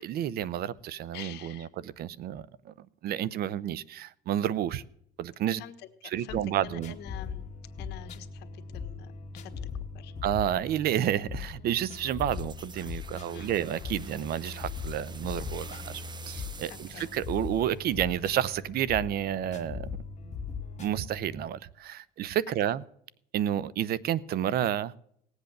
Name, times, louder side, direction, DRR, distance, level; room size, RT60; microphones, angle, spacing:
voice 1, 0.0-4.8 5.2-5.6 6.1-6.9 10.2-19.9 20.3-20.4 20.8-22.8 23.3-24.9, right 11 dB, 65° right, 0.7 m, -30 dB
voice 2, 1.1-1.7 5.4-5.9 6.2-7.4 7.8-9.5 9.9-10.1 13.3-13.6 16.7-17.0, left 12 dB, 80° left, 1.4 m, -47 dB
sound 1, 6.3-21.5, left 5 dB, 40° left, 1.9 m, -40 dB
sound 2, 12.0-18.6, right 5 dB, 25° right, 0.8 m, -48 dB
18.5 x 8.1 x 6.6 m
cardioid pair, 110°, 17 cm